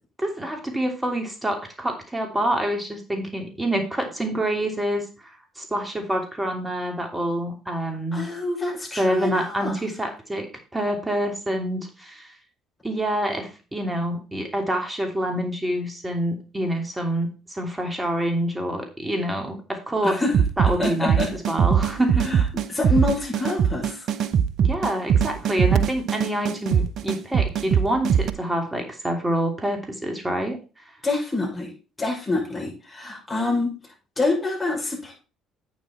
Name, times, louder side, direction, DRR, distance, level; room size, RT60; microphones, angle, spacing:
voice 1, 0.2-8.3 9.0-10.5 10.7-12.3 12.8-20.2 20.6-22.3 24.6-30.8, right 1 dB, 15° right, 4 dB, 2.9 m, -27 dB
voice 2, 8.1-9.7 20.0-20.3 20.8-21.3 22.2-22.4 22.7-24.1 31.0-31.7 32.0-33.7 34.2-35.1, left 2 dB, 20° left, -1 dB, 6.0 m, -26 dB
sound 1, 20.3-28.3, right 8 dB, 55° right, 0.7 m, -21 dB
8.7 x 7.5 x 4.3 m, 0.32 s
hypercardioid pair, 55°, 0 cm